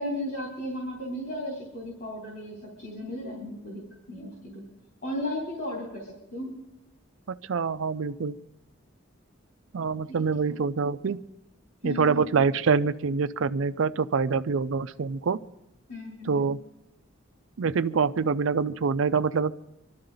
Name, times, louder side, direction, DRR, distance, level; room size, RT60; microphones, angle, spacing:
voice 1, 0.0-4.6 5.0-6.5 10.1-10.6 11.8-12.5 15.9-16.5, left 1 dB, 50° left, -2 dB, 3.5 m, -35 dB
voice 2, 7.3-8.3 9.7-11.2 11.8-15.4 16.3-16.6 17.6-19.5, right 5 dB, 70° right, 11 dB, 0.5 m, -25 dB
25.5 x 12.5 x 3.9 m, 0.88 s
head